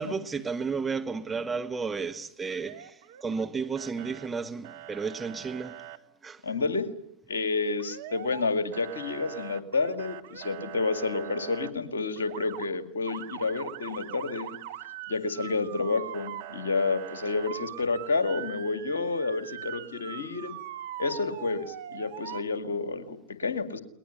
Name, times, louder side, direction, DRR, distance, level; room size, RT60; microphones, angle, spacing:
voice 1, 0.0-5.8 6.2-6.4, right 5 dB, 15° right, 1.3 m, -33 dB
Motor vehicle (road) / Siren, 2.5-3.5 3.8-4.3 4.6-6.0 7.8-8.5 8.7-11.7 12.2-12.7 13.1-22.4, right 12 dB, 55° right, 1.8 m, -42 dB
voice 2, 6.4-6.9 7.3-14.6 15.1-20.5 21.0-23.8, left 3 dB, 70° left, 2.3 m, -30 dB
21.5 x 20.5 x 9.9 m
figure-of-eight pair, 90°, 0 cm